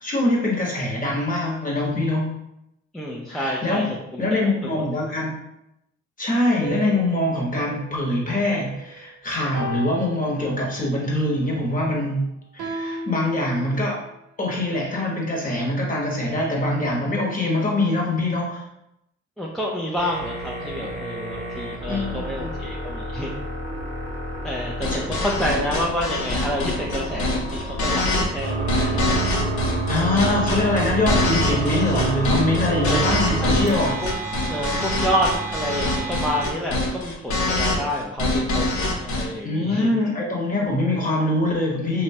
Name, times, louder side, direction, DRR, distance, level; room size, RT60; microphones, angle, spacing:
voice 1, 0.0-2.3 3.3-3.8 4.2-5.3 6.2-12.3 12.5-14.0 14.4-18.6 21.9-22.5 24.9-25.0 29.9-34.0 39.4-42.0, left 1 dB, 25° left, -2 dB, 0.9 m, -23 dB
voice 2, 2.9-4.2 4.6-5.1 19.4-23.3 24.4-29.0 32.8-33.1 33.4-34.1 34.5-39.9, equal, ahead, -3 dB, 0.3 m, -28 dB
sound 1, 6.6-9.0 9.5-11.0 12.6-14.1, right 2 dB, 85° right, 0.6 m, -36 dB
sound 2, 20.0-36.5, right 3 dB, 25° right, 0.9 m, -29 dB
sound 3, 24.8-39.3, left 2 dB, 65° left, 0.7 m, -25 dB
2.9 x 2.2 x 2.7 m, 0.82 s
cardioid pair, 90°, 30 cm